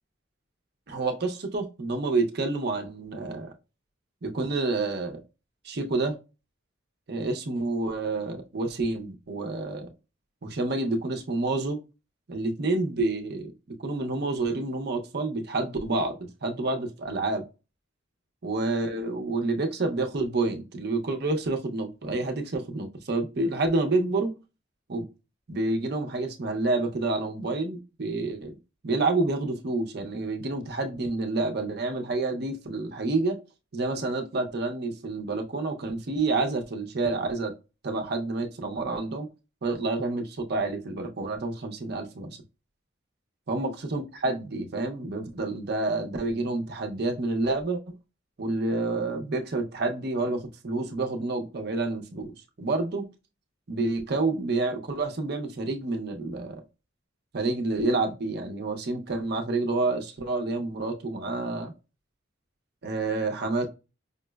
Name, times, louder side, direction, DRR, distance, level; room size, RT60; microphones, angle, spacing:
voice 1, 0.9-3.5 4.2-5.2 5.6-6.2 7.1-9.9 10.4-11.8 12.3-13.5 13.8-17.4 18.4-24.3 24.9-25.1 25.5-28.6 28.8-33.4 33.7-37.5 37.8-39.3 39.6-42.4 43.5-47.9 48.4-53.1 53.7-56.6 57.3-61.7 62.8-63.7, right 3 dB, 55° right, 0.6 m, -28 dB
5.1 x 2.0 x 2.2 m
head